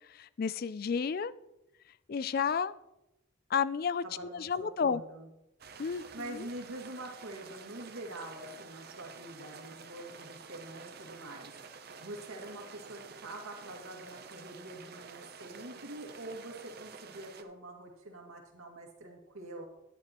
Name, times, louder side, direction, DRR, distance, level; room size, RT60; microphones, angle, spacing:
voice 1, 0.1-1.3 2.1-2.7 3.5-4.0 4.3-5.0 5.8-6.5, left 6 dB, 45° left, 17 dB, 0.3 m, -31 dB
voice 2, 4.0-5.3 6.1-11.5 12.0-19.6, right 1 dB, 85° right, 0 dB, 2.3 m, -45 dB
sound 1, 5.6-17.4, right 5 dB, 45° right, 0.6 m, -50 dB
11.5 x 11.0 x 3.0 m, 0.91 s
head